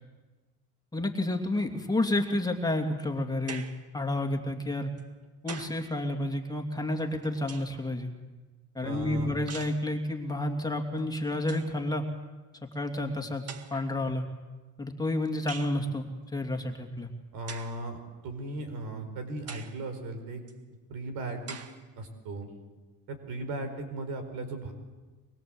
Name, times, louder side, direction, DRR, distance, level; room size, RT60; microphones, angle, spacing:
voice 1, 0.9-3.7 3.9-4.9 5.4-8.1 8.7-12.0 12.7-14.2 14.8-17.1, left 1 dB, 10° left, 3 dB, 2.7 m, -30 dB
sound 1, 3.5-3.9 5.0-5.9 7.0-7.9 9.5-9.9 11.0-11.1 11.4-11.7 12.7-12.8 13.5-14.0 15.5-15.8 17.5-17.8 18.5-18.6 19.5-19.8 20.5-20.6 21.5-21.8, right 5 dB, 45° right, 2.0 m, -43 dB
voice 2, 8.8-9.3 17.3-20.4 20.9-21.6 22.0-22.5 23.1-24.7, right 2 dB, 75° right, 7 dB, 4.9 m, -37 dB
24.0 x 22.5 x 7.9 m, 1.2 s
cardioid pair, 110°, 35 cm